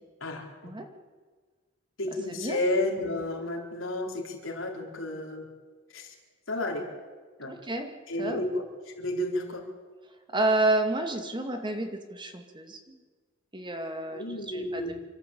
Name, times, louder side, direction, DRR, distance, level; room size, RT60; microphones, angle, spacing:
voice 1, 0.2-0.7 2.0-5.5 5.9-6.1 6.5-6.9 7.4-7.5 8.1-8.6 8.9-9.6 14.1-14.9, left 1 dB, 70° left, 1 dB, 4.3 m, -31 dB
voice 2, 7.4-7.9 8.2-8.4 10.3-13.0 13.5-14.9, right 2 dB, 25° right, 5 dB, 2.3 m, -30 dB
27.5 x 13.0 x 8.6 m, 1.5 s
head